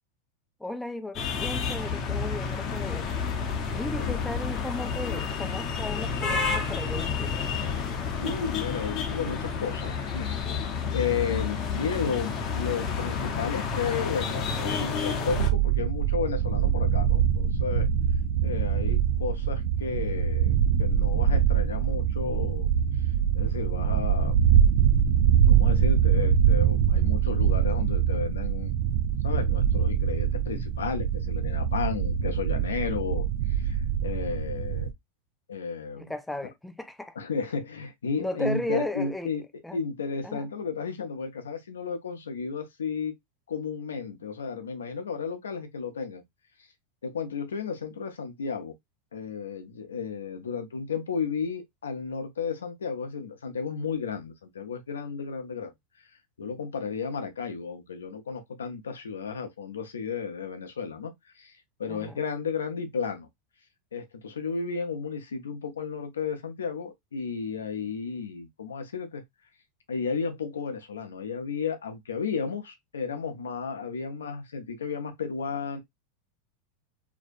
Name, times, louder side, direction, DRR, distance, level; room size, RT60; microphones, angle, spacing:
voice 1, 0.6-3.1 3.7-7.4 36.0-37.2 38.2-39.3 39.6-39.8 40.2-40.5 61.9-62.2, left 1 dB, 5° left, 0.4 m, -35 dB
sound 1, 1.1-15.5, left 5 dB, 40° left, 0.6 m, -30 dB
voice 2, 8.2-10.4 10.9-17.9 18.4-22.7 23.3-24.4 25.4-28.9 29.2-34.9 35.5-36.1 37.2-39.5 39.7-43.2 43.5-46.2 47.0-48.7 49.1-55.7 56.4-61.5 61.8-63.3 63.9-69.2 69.9-75.8, left 5 dB, 90° left, 0.5 m, -33 dB
sound 2, 15.3-34.9, right 8 dB, 65° right, 0.3 m, -24 dB
2.6 x 2.1 x 2.5 m
hypercardioid pair, 100°, 0 cm